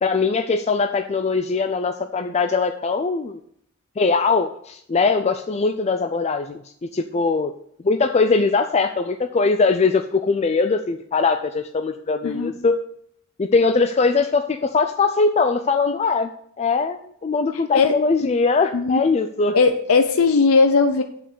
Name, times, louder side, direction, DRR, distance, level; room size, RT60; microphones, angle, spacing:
voice 1, 0.0-3.4 4.0-7.5 7.8-12.8 13.4-16.3 16.6-19.6, left 4 dB, 30° left, 7 dB, 0.4 m, -21 dB
voice 2, 19.5-21.0, left 4 dB, 85° left, 7 dB, 0.6 m, -17 dB
7.7 x 5.3 x 6.8 m, 0.67 s
head